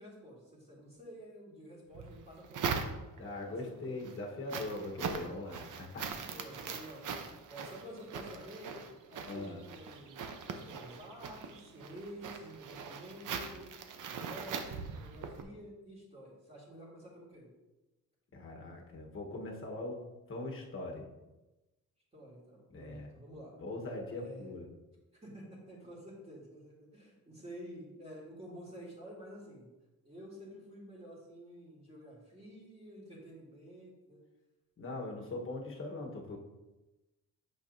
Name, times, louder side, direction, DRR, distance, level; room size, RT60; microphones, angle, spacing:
voice 1, 0.0-2.8 3.4-3.7 6.3-7.2 7.5-13.7 14.0-17.5 22.1-23.5 24.1-24.5 25.2-29.7 30.0-34.2, equal, 20° right, -6 dB, 2.3 m, -50 dB
sound 1, 1.9-3.4 3.8-15.4, right 6 dB, 65° right, 0.8 m, -41 dB
voice 2, 3.2-6.1 9.2-9.6 18.3-21.1 22.7-23.1 23.6-24.7 34.8-36.4, left 2 dB, 40° left, 0 dB, 1.3 m, -41 dB
8.5 x 6.5 x 2.7 m, 1.1 s
wide cardioid pair, 150°, 34 cm